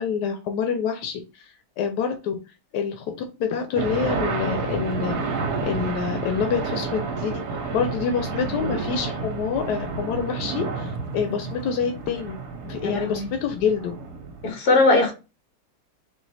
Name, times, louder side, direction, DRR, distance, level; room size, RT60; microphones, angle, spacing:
voice 1, 0.0-1.5 1.8-2.4 2.7-3.1 3.4-5.3 5.6-7.4 7.7-12.4 12.6-13.9, left 7 dB, 90° left, 1.3 m, -27 dB
sound 1, 3.8-14.5, right 4 dB, 75° right, 1.3 m, -30 dB
voice 2, 12.8-13.3 14.4-15.1, left 2 dB, 65° left, 1.7 m, -20 dB
4.0 x 2.5 x 4.0 m
omnidirectional pair, 1.7 m